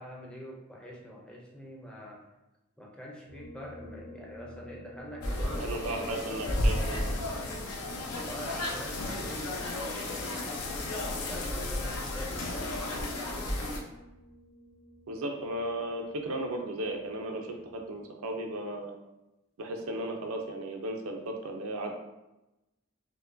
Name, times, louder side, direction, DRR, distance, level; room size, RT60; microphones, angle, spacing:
voice 1, 0.0-2.3 2.8-6.3 8.2-13.6, equal, 5° left, -3 dB, 0.5 m, -45 dB
sound 1, 3.3-18.0, equal, 55° left, 1.1 m, -52 dB
sound 2, 5.2-13.8, left 1 dB, 85° left, 0.6 m, -33 dB
voice 2, 5.6-7.5 15.1-19.0 19.6-22.0, right 1 dB, 75° right, 3 dB, 0.5 m, -35 dB
4.6 x 2.2 x 2.5 m, 0.97 s
head